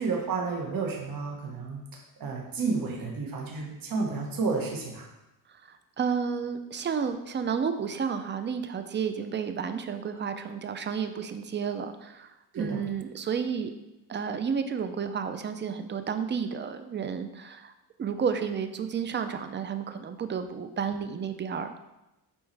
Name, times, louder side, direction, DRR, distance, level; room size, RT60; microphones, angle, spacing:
voice 1, 0.0-1.8 2.2-5.0 12.5-12.8, right 4 dB, 55° right, 0 dB, 1.5 m, -31 dB
voice 2, 5.6-13.7 14.1-17.7 18.0-21.8, right 6 dB, 25° right, 9 dB, 0.5 m, -31 dB
7.1 x 4.5 x 3.4 m, 0.95 s
cardioid pair, 110°, 42 cm